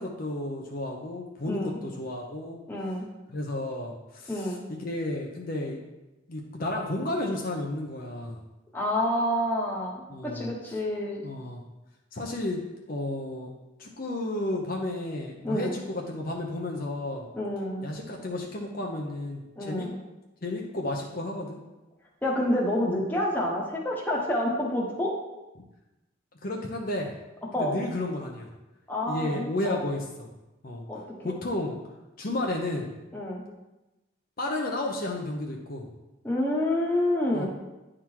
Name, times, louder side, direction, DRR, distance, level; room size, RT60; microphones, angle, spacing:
voice 1, 0.0-2.6 3.3-5.8 6.3-8.4 10.1-10.5 11.2-11.6 12.1-13.5 13.8-17.3 17.8-19.9 20.4-21.6 26.4-27.1 27.6-28.5 29.0-30.3 30.6-30.8 31.2-31.8 32.2-32.9 34.4-35.9 37.3-37.5, left 1 dB, 50° left, 0 dB, 0.8 m, -32 dB
voice 2, 1.4-1.8 2.7-3.1 4.3-4.6 8.7-11.2 15.4-15.8 17.3-17.9 19.6-20.0 22.2-25.1 27.5-27.8 28.9-29.9 30.9-31.4 33.1-33.4 36.2-37.5, left 1 dB, 10° left, -3 dB, 1.2 m, -28 dB
9.9 x 3.7 x 4.5 m, 1.0 s
head